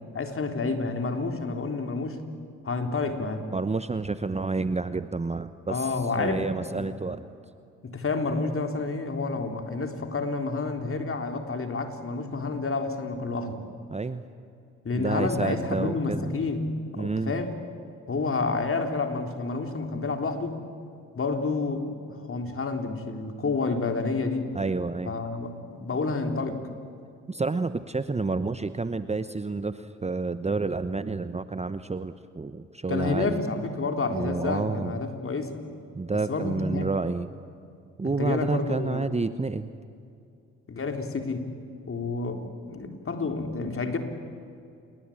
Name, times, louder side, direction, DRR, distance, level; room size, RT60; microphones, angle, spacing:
voice 1, 0.0-2.2 2.6-3.5 5.7-6.5 6.8-6.9 7.8-13.6 14.8-17.5 18.1-20.6 21.2-24.5 25.0-26.6 32.9-35.6 36.3-36.9 38.0-39.1 40.7-41.5 41.9-44.0, left 3 dB, 35° left, 5 dB, 3.8 m, -29 dB
voice 2, 3.5-7.3 13.9-14.2 14.9-16.3 17.0-17.3 24.5-25.1 27.3-33.4 34.1-35.0 35.9-37.3 38.0-39.7, right 3 dB, 20° right, 12 dB, 1.0 m, -29 dB
28.5 x 21.0 x 8.8 m, 2.5 s
hypercardioid pair, 50°, 36 cm